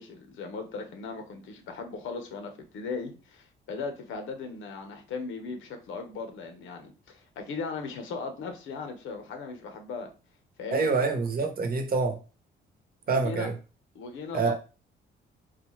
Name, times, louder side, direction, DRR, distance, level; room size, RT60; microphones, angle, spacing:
voice 1, 0.0-10.1 10.6-11.0 13.1-13.5 13.9-14.5, left 4 dB, 85° left, 5 dB, 0.8 m, -38 dB
voice 2, 10.7-12.2 13.1-13.5 14.3-14.5, right 4 dB, 50° right, 4 dB, 0.9 m, -26 dB
4.0 x 2.3 x 3.1 m, 0.33 s
cardioid pair, 90°, 20 cm